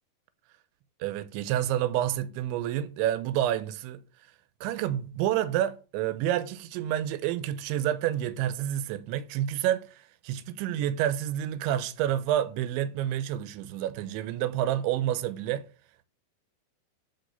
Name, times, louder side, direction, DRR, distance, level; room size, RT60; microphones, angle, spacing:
voice 1, 1.0-4.0 4.6-15.7, right 11 dB, 85° right, 3.1 m, -29 dB
10.5 x 5.1 x 6.7 m
omnidirectional pair, 5.3 m